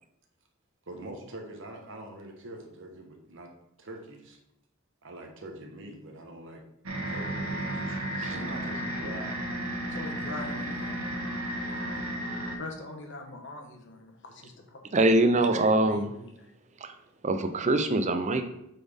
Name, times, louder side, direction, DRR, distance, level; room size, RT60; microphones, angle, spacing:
voice 1, 0.9-3.5 3.8-4.4 5.0-6.6 7.1-9.4 11.6-12.1, right 1 dB, 65° right, 3 dB, 1.2 m, -44 dB
sound 1, 6.8-12.6, right 1 dB, 90° right, 1.4 m, -33 dB
voice 2, 9.9-11.1 12.5-14.8 15.3-16.5, left 2 dB, 60° left, 3 dB, 1.2 m, -43 dB
voice 3, 14.9-16.1 16.8-16.9 17.2-18.4, right 2 dB, 35° right, 8 dB, 0.6 m, -23 dB
8.2 x 4.2 x 3.5 m, 0.81 s
head